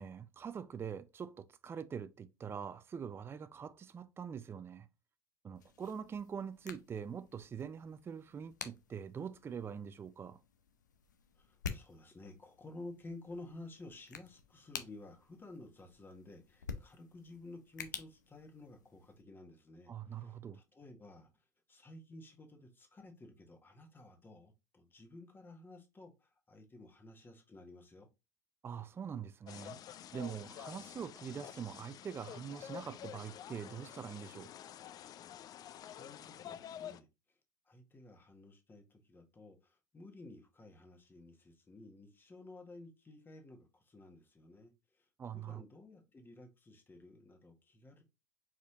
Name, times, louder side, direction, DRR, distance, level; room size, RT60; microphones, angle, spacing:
voice 1, 0.0-4.9 5.4-10.4 19.9-20.6 28.6-34.5 45.2-45.6, right 7 dB, 25° right, 0.4 m, -44 dB
sound 1, 5.5-19.2, left 6 dB, 90° left, 0.6 m, -50 dB
voice 2, 11.4-21.3 21.7-28.1 35.8-37.1 37.7-44.7 45.0-45.1 45.3-48.0, left 2 dB, 20° left, 1.5 m, -53 dB
sound 2, 29.5-37.0, left 10 dB, 40° left, 0.5 m, -49 dB
4.9 x 4.3 x 2.4 m
hypercardioid pair, 75°, 10 cm